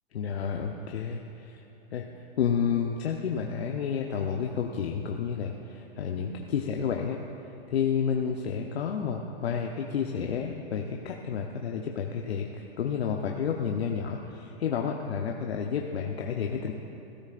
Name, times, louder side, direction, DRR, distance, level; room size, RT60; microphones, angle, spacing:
voice 1, 0.1-1.6 1.9-2.0 2.4-7.2 7.4-16.7, left 7 dB, 80° left, 1 dB, 0.9 m, -30 dB
19.5 x 13.5 x 2.5 m, 2.9 s
hypercardioid pair, 140°, 31 cm